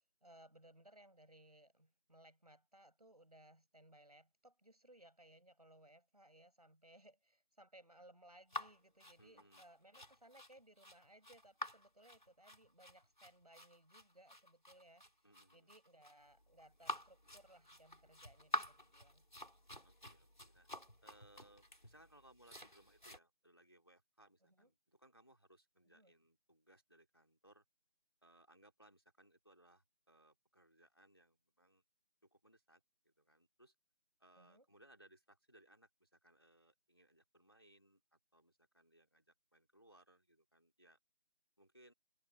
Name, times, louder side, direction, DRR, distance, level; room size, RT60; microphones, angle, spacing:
voice 1, 0.2-15.0 15.5-19.2 24.4-24.7 25.9-26.1 34.4-34.6, right 1 dB, 35° right, 6.6 m, -64 dB
sound 1, 8.5-23.2, equal, 40° left, 3.9 m, -49 dB
voice 2, 9.2-9.6 15.2-15.7 19.8-20.7 21.0-27.6 28.2-31.8 32.3-33.7 34.2-41.0 41.6-41.9, right 1 dB, 20° left, 2.7 m, -67 dB
figure-of-eight pair, 175°, 35 cm